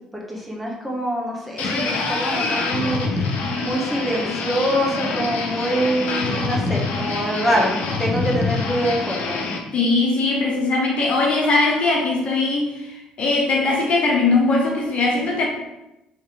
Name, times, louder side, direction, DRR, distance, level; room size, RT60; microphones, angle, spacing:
voice 1, 0.1-3.3 3.6-7.7 8.0-9.4, right 1 dB, ahead, -3 dB, 1.4 m, -24 dB
sound 1, 1.6-9.6, left 3 dB, 70° left, 0.8 m, -25 dB
voice 2, 9.7-15.5, left 3 dB, 50° left, -1 dB, 1.1 m, -20 dB
3.3 x 3.3 x 4.6 m, 0.91 s
supercardioid pair, 65°, 3 cm